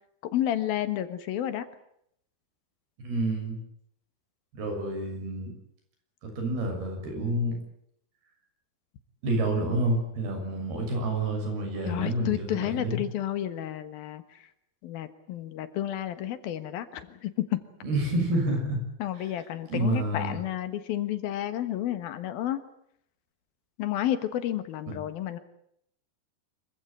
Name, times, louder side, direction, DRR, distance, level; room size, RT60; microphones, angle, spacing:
voice 1, 0.3-1.7 11.9-14.5 14.8-17.6 19.0-22.6 23.8-25.4, left 12 dB, 75° left, 11 dB, 3.3 m, -31 dB
voice 2, 3.0-3.6 4.5-5.5 6.2-7.6 9.2-13.0 17.8-18.8 19.7-20.4 24.9-25.0, right 1 dB, 90° right, 4 dB, 8.5 m, -29 dB
26.0 x 16.0 x 10.0 m, 0.72 s
omnidirectional pair, 4.4 m